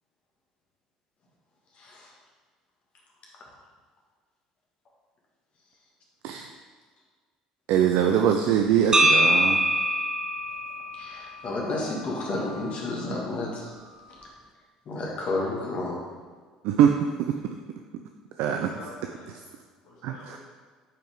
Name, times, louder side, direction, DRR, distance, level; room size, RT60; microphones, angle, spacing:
voice 1, 1.7-2.1 10.9-13.7 14.9-16.0, left 2 dB, 45° left, -3 dB, 1.9 m, -31 dB
voice 2, 7.7-9.7 16.6-17.4 18.4-18.6 20.0-20.4, right 9 dB, 55° right, 4 dB, 0.4 m, -23 dB
sound 1, 8.9-13.0, equal, 25° right, 0.8 m, -25 dB
voice 3, 18.5-19.5 19.8-20.4, left 1 dB, 60° left, -5 dB, 2.1 m, -44 dB
9.0 x 4.8 x 3.7 m, 1.5 s
figure-of-eight pair, 55°, 3 cm